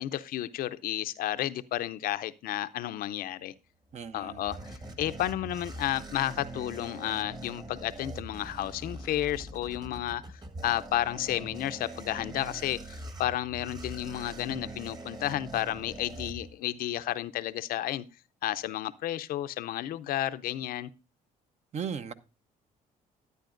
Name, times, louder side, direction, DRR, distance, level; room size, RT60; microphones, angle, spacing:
voice 1, 0.0-3.5 4.1-10.2 10.6-18.0 18.4-20.9, left 13 dB, 65° left, 0.6 m, -32 dB
sound 1, 3.9-16.9, right 1 dB, 25° right, 1.4 m, -43 dB
voice 2, 3.9-4.7 21.7-22.1, right 7 dB, 45° right, 0.8 m, -37 dB
12.0 x 9.7 x 2.5 m
supercardioid pair, 85°, 16 cm